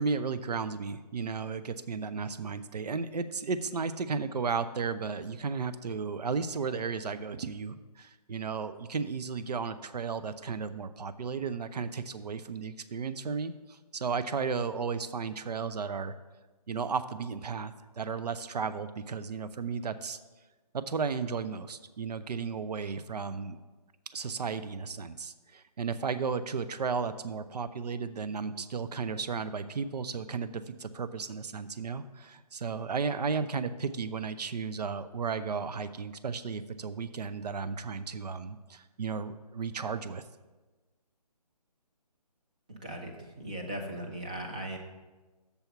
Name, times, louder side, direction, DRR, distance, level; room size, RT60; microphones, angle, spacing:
voice 1, 0.0-16.1 16.7-20.2 20.7-23.6 24.1-40.2, right 5 dB, 80° right, 12 dB, 0.5 m, -34 dB
voice 2, 42.7-44.8, right 1 dB, 10° right, 1 dB, 0.4 m, -38 dB
6.9 x 4.5 x 6.7 m, 1.2 s
figure-of-eight pair, 160°, 20 cm